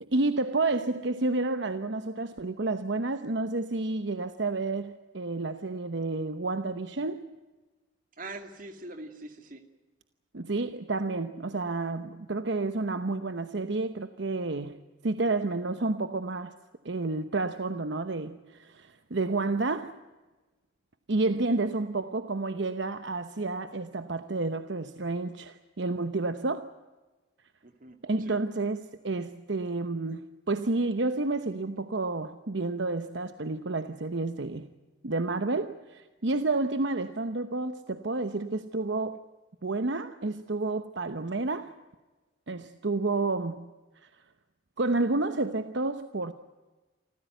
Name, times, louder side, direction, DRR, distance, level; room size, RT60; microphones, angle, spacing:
voice 1, 0.0-7.3 10.3-14.8 15.0-16.5 16.8-20.0 21.1-26.7 28.0-34.7 35.0-39.2 39.6-41.7 42.5-43.7 44.0-44.1 44.8-46.3, right 3 dB, 70° right, 10 dB, 0.9 m, -30 dB
voice 2, 8.2-9.6 27.6-28.4, right 2 dB, 45° right, 6 dB, 2.4 m, -43 dB
27.0 x 15.0 x 9.1 m, 1.2 s
head